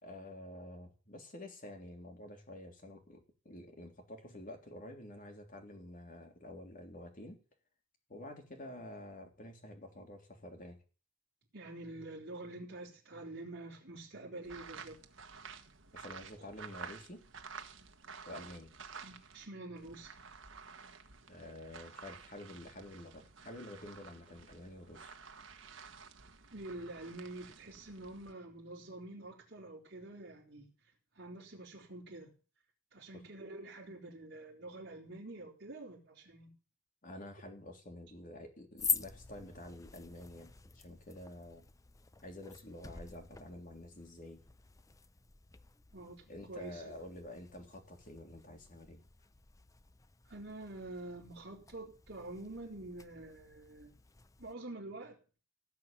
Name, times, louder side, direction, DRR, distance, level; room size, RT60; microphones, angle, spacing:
voice 1, 0.0-7.4 8.1-10.8 15.9-17.2 18.2-18.7 21.3-25.2 37.0-41.7 42.2-44.4 46.3-49.0, left 1 dB, 45° left, 3 dB, 3.3 m, -49 dB
voice 2, 11.5-15.0 16.4-16.5 19.0-20.1 26.5-30.7 31.1-32.3 32.9-36.5 45.9-46.9 50.2-53.9 54.4-55.2, right 2 dB, 60° right, -6 dB, 3.8 m, -47 dB
sound 1, 14.4-19.5 19.8-28.3, right 5 dB, 80° right, 1.5 m, -52 dB
sound 2, 38.8-54.5, left 6 dB, 15° left, 0.6 m, -46 dB
17.0 x 5.8 x 9.1 m, 0.36 s
head